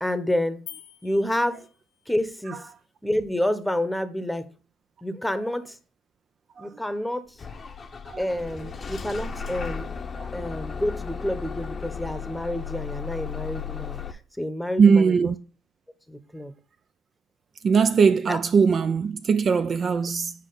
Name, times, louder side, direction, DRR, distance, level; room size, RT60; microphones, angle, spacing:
voice 1, 0.0-0.6 1.0-1.6 2.1-2.6 3.0-4.5 5.0-5.8 6.6-7.4 8.2-9.9 10.3-15.3 16.1-16.5 18.3-18.4, left 1 dB, 5° left, 0.9 m, -28 dB
sound 1, 0.7-2.2, left 11 dB, 80° left, 0.7 m, -46 dB
Bus / Engine starting, 7.4-14.1, left 6 dB, 35° left, 0.7 m, -35 dB
voice 2, 14.8-15.4 17.6-20.3, right 5 dB, 45° right, 0.4 m, -20 dB
6.5 x 4.8 x 3.9 m
supercardioid pair, 75°, 0 cm